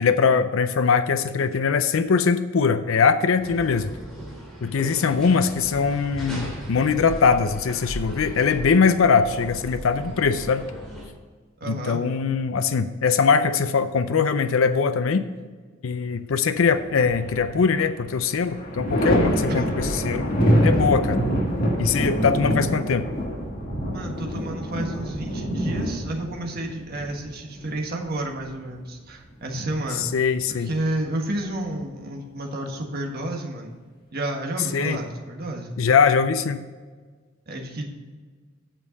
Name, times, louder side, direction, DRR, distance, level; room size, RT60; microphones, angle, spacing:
voice 1, 0.0-3.9 4.6-10.6 11.7-15.3 15.8-20.3 20.6-21.2 21.8-23.1 30.0-30.7 34.7-35.0 35.8-36.6, left 5 dB, 75° left, 10 dB, 0.5 m, -21 dB
sound 1, 3.4-11.1, equal, 5° left, 2.8 m, -37 dB
voice 2, 11.6-12.0 19.5-19.7 23.9-30.0 30.5-33.7 34.1-35.7 37.5-37.9, right 1 dB, 50° right, 1 dB, 1.5 m, -31 dB
Thunder, 16.5-31.8, equal, 30° right, 1.6 m, -39 dB
Thunder 2, 17.1-17.9 18.2-27.8 29.3-30.2, equal, 45° left, 1.8 m, -25 dB
9.0 x 6.4 x 5.2 m, 1.5 s
head